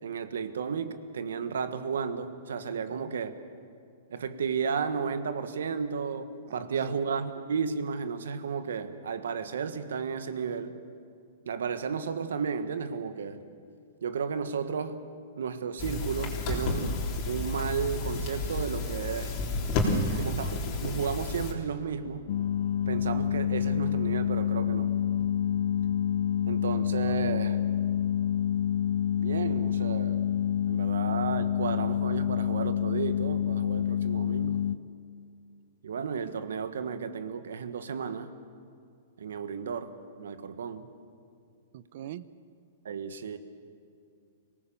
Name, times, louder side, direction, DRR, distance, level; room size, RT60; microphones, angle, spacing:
voice 1, 0.0-3.3 4.1-10.8 11.4-13.4 14.0-15.0 15.4-16.9 17.3-19.4 20.2-22.3 22.9-24.9 26.5-27.6 29.2-30.3 30.7-34.6 35.8-38.3 39.2-40.9 42.8-43.4, right 6 dB, 90° right, 11 dB, 1.5 m, -33 dB
voice 2, 2.7-3.1 6.5-6.9 19.8-20.4 27.0-27.3 41.7-42.3, right 10 dB, 50° right, 16 dB, 0.8 m, -41 dB
sound 1, 15.8-21.5, left 2 dB, 35° left, 3.4 m, -31 dB
sound 2, 18.1-18.5 19.8-20.1 21.4-21.7 23.0-23.9 25.2-26.1, left 4 dB, 75° left, 3.5 m, -48 dB
sound 3, 22.3-34.8, left 10 dB, 55° left, 0.4 m, -28 dB
25.5 x 18.0 x 7.2 m, 2.4 s
hypercardioid pair, 155°, 0 cm